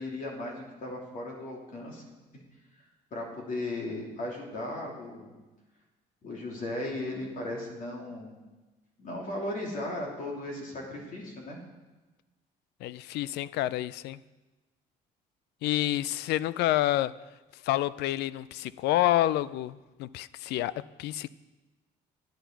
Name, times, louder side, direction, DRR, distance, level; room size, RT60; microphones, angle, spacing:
voice 1, 0.0-2.0 3.1-5.3 6.2-8.3 9.0-11.6, left 1 dB, 50° left, -1 dB, 2.9 m, -36 dB
voice 2, 12.8-14.2 15.6-17.2 17.6-21.3, left 14 dB, 80° left, 19 dB, 0.4 m, -28 dB
10.5 x 10.0 x 4.6 m, 1.1 s
cardioid pair, 110°, 17 cm